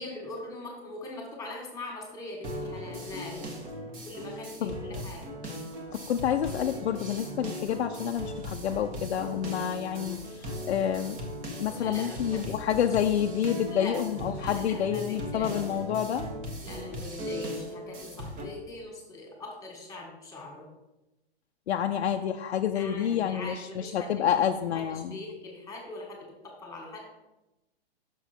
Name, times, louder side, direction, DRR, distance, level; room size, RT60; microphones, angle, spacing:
voice 1, 0.0-3.4 4.0-5.3 11.7-12.6 13.7-14.0 14.2-15.7 16.6-20.7 22.7-24.5 24.9-27.0, left 2 dB, 10° left, 0 dB, 1.8 m, -41 dB
sound 1, 2.4-18.4, equal, 25° right, 1.3 m, -38 dB
voice 2, 5.9-11.2 11.6-16.2 21.7-25.2, left 9 dB, 80° left, 4 dB, 0.6 m, -28 dB
6.2 x 6.0 x 4.4 m, 0.96 s
hypercardioid pair, 135°, 32 cm